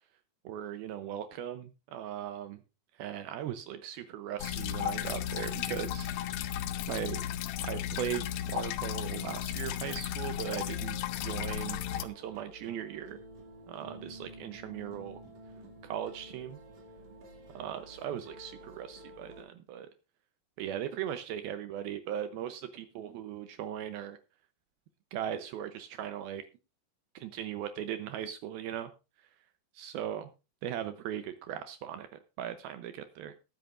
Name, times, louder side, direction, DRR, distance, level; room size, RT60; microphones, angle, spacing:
voice 1, 0.4-2.6 3.0-6.6 6.9-7.2 7.6-13.2 13.7-15.2 15.8-16.6 17.5-19.9 20.6-24.2 25.1-26.4 27.2-28.9 29.8-30.3 30.6-32.1 32.4-33.3, right 10 dB, 75° right, 9 dB, 2.5 m, -38 dB
sound 1, 4.4-12.0, left 11 dB, 75° left, 2.3 m, -35 dB
sound 2, 10.6-19.4, right 1 dB, 45° right, 3.4 m, -51 dB
20.0 x 9.0 x 2.5 m, 0.29 s
omnidirectional pair, 4.7 m